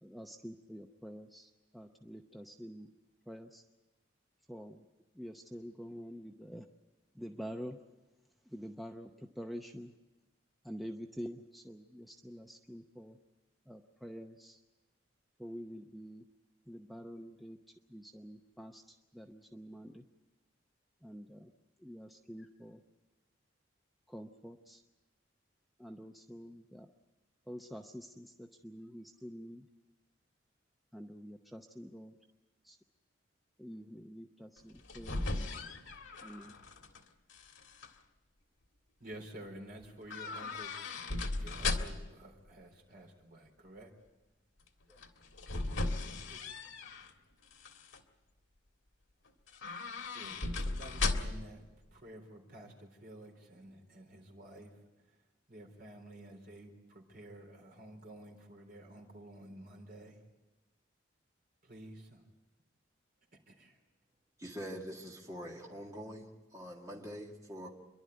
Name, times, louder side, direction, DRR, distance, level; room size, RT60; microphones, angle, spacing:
voice 1, 0.0-2.9 3.3-3.6 4.5-4.8 5.1-6.7 7.1-7.8 8.4-9.9 10.6-13.2 13.7-14.6 15.4-16.2 16.7-17.6 17.9-20.0 21.0-21.5 21.8-22.8 24.1-24.8 25.8-26.9 27.5-29.7 30.9-32.2 32.6-32.8 33.6-35.8 36.2-36.6 44.9-45.0, equal, ahead, 0.7 m, -47 dB
sound 1, 34.6-37.0 37.3-37.9 40.1-42.2 45.0-47.1 47.5-48.0 49.5-51.6 51.8-51.9, left 3 dB, 85° left, 1.8 m, -37 dB
voice 2, 39.0-40.7 41.3-43.9 46.0-46.4 50.1-55.2 55.5-60.2 61.6-62.3 63.5-63.8, right 1 dB, 50° right, 3.9 m, -51 dB
voice 3, 64.4-67.7, equal, 15° right, 2.0 m, -44 dB
28.0 x 11.5 x 9.4 m
head